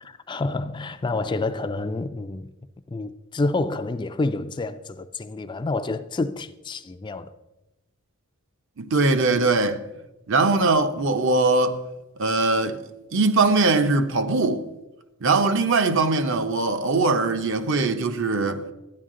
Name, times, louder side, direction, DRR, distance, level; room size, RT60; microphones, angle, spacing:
voice 1, 0.0-2.5 2.9-7.3, left 2 dB, 20° left, 0.3 m, -28 dB
voice 2, 8.8-9.8 10.3-11.8 12.2-12.8 13.1-14.6 15.2-18.6, right 3 dB, 55° right, 0.7 m, -21 dB
12.5 x 9.9 x 3.7 m
head